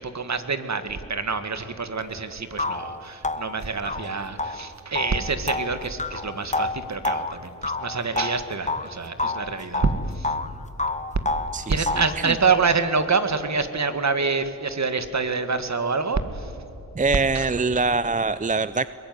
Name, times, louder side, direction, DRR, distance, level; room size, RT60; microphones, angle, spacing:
voice 1, 0.0-9.9 10.2-10.3 11.7-16.5 17.3-17.5, right 4 dB, 45° right, 10 dB, 2.1 m, -26 dB
sound 1, 2.0-2.1 2.6-8.9 9.2-10.5 10.8-12.2, left 3 dB, 20° left, 1.3 m, -29 dB
voice 2, 11.5-11.9 12.2-12.4 16.9-18.9, right 3 dB, 20° right, 15 dB, 0.6 m, -24 dB
22.0 x 21.0 x 9.6 m, 3.0 s
cardioid pair, 60°, 38 cm